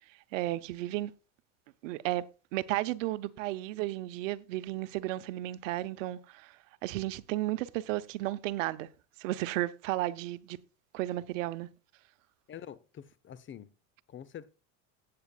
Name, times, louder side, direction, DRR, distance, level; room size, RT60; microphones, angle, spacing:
voice 1, 0.3-1.1 1.8-2.2 2.5-6.6 6.8-8.9 9.2-10.6 10.9-11.7, right 16 dB, 80° right, 0.9 m, -33 dB
voice 2, 12.5-13.7 14.1-14.6, left 9 dB, 30° left, 0.9 m, -46 dB
15.5 x 8.6 x 2.4 m
supercardioid pair, 115°, 38 cm